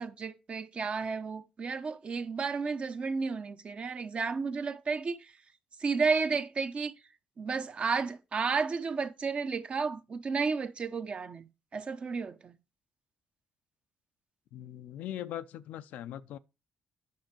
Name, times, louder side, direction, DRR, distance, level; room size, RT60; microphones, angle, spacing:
voice 1, 0.0-5.3 5.8-6.9 7.4-12.6, right 5 dB, 45° right, 0.9 m, -32 dB
voice 2, 14.5-16.4, left 12 dB, 75° left, 0.4 m, -40 dB
9.2 x 5.8 x 4.4 m
supercardioid pair, 60°, 3 cm